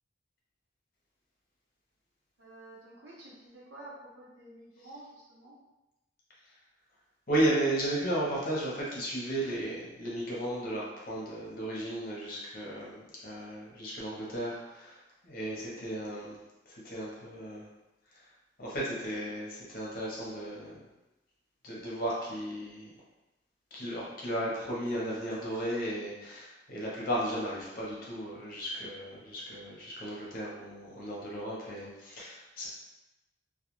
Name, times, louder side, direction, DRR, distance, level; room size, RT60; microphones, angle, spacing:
voice 1, 2.4-5.6, right 1 dB, 90° right, -6 dB, 0.9 m, -50 dB
voice 2, 7.3-16.4 16.7-17.7 18.1-18.3 18.6-20.8 21.6-22.9 23.7-32.7, right 1 dB, 50° left, -5 dB, 0.8 m, -34 dB
2.3 x 2.2 x 2.9 m, 0.99 s
head